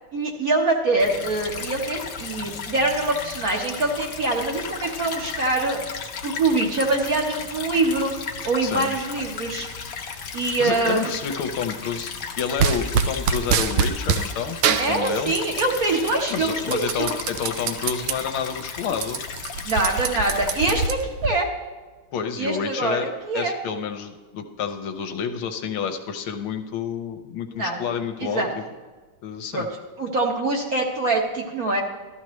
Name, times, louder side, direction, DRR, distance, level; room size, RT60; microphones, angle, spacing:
voice 1, 0.1-5.8 6.2-8.1 8.4-9.7 10.3-11.0 14.8-17.2 19.6-21.5 22.4-23.6 27.5-27.9 28.2-28.5 29.5-29.6 30.0-31.8, right 2 dB, 50° right, 0 dB, 1.4 m, -24 dB
Stream / Trickle dribble, 1.0-20.9, left 6 dB, 55° left, 1.0 m, -35 dB
voice 2, 8.6-8.9 10.6-15.3 16.3-19.2 22.1-23.1 23.3-28.6 29.2-29.7, left 7 dB, 75° left, 7 dB, 1.5 m, -29 dB
sound 1, 12.6-14.3 14.6-15.8 16.1-18.2 18.6-18.7 18.9-21.3, right 7 dB, 80° right, 1.4 m, -24 dB
13.5 x 13.5 x 3.1 m, 1.3 s
omnidirectional pair, 2.3 m